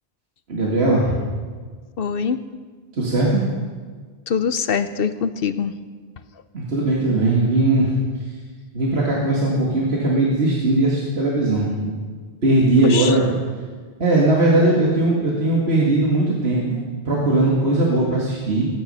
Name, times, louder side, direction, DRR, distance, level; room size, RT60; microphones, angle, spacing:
voice 1, 0.5-1.3 2.9-3.4 6.5-7.9 8.7-11.9 12.4-13.3 14.0-18.7, right 2 dB, 65° right, -4 dB, 2.3 m, -19 dB
voice 2, 2.0-2.4 4.3-5.7 12.8-13.2, left 6 dB, 60° left, 12 dB, 0.9 m, -23 dB
21.0 x 9.5 x 5.6 m, 1.6 s
omnidirectional pair, 1.2 m